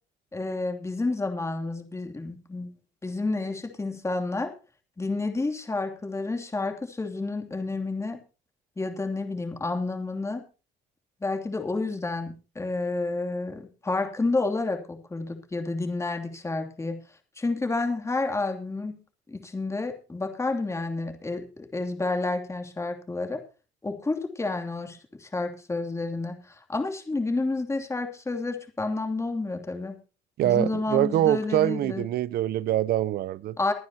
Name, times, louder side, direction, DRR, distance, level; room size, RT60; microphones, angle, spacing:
voice 1, 0.3-2.7 3.0-4.5 5.0-8.2 8.8-10.4 11.2-17.0 17.4-19.0 19.3-23.4 23.8-30.0 30.4-32.1 33.6-33.7, left 3 dB, 15° left, 2.8 m, -30 dB
voice 2, 30.4-33.6, right 13 dB, 65° right, 0.7 m, -24 dB
24.0 x 9.4 x 2.9 m
cardioid pair, 110°, 17 cm